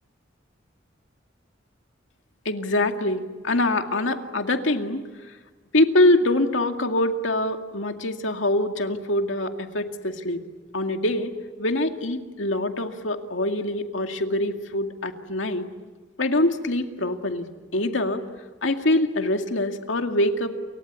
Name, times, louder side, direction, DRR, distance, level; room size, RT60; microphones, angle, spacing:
voice 1, 2.5-5.0 5.7-10.4 10.7-11.3 11.6-15.6 16.2-17.5 17.7-18.2 18.6-20.6, left 1 dB, 80° left, 5 dB, 2.3 m, -24 dB
29.0 x 24.5 x 8.4 m, 1.3 s
head